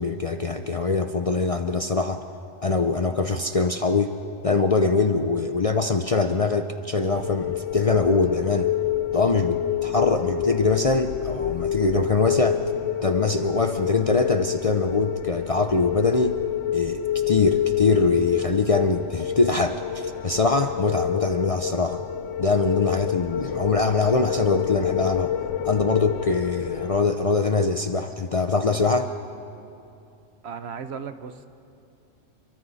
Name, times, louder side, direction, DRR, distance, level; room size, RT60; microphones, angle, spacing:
voice 1, 0.0-2.2 2.6-4.1 4.4-8.7 9.1-12.6 13.0-16.4 16.7-22.0 22.4-25.3 25.6-29.1, left 3 dB, 40° left, 7 dB, 0.5 m, -23 dB
sound 1, 7.1-27.0, left 10 dB, 90° left, 1.0 m, -28 dB
voice 2, 30.4-31.5, right 6 dB, 65° right, 10 dB, 1.0 m, -35 dB
29.5 x 23.0 x 4.1 m, 2.7 s
omnidirectional pair, 1.3 m